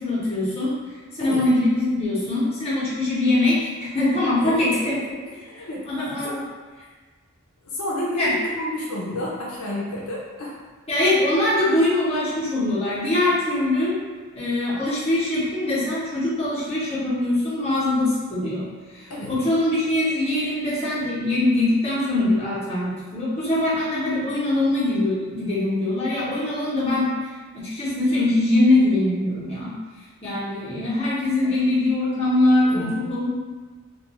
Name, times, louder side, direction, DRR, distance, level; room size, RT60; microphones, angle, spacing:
voice 1, 0.0-0.7 1.1-5.0 5.5-6.4 8.2-8.3 10.9-13.9 14.3-18.7 18.9-27.1 27.5-29.7 30.2-33.3, left 2 dB, 30° left, -9 dB, 0.8 m, -22 dB
voice 2, 5.2-5.9 6.2-6.4 7.6-10.6 19.1-19.4 32.7-32.9, left 1 dB, 75° left, -5 dB, 0.5 m, -30 dB
2.4 x 2.2 x 2.9 m, 1.4 s
head